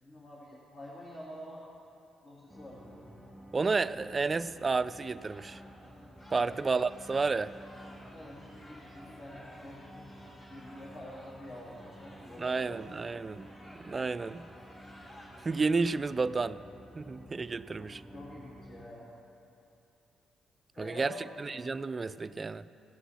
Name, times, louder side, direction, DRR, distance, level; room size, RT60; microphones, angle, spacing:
voice 1, 0.0-1.7 2.2-3.2 6.3-6.6 8.1-10.1 10.5-12.8 17.8-19.1 20.7-21.2, left 1 dB, 45° left, -6 dB, 2.0 m, -47 dB
sound 1, 2.5-18.8, equal, 5° left, 2.2 m, -52 dB
voice 2, 3.5-5.6 6.3-7.5 12.4-13.5 13.8-14.4 15.4-16.6 17.0-18.0 20.8-22.6, right 4 dB, 30° right, 15 dB, 0.3 m, -31 dB
sound 2, 5.1-16.0, equal, 30° left, 3.2 m, -54 dB
15.5 x 6.1 x 7.1 m, 2.9 s
cardioid pair, 90°, 0 cm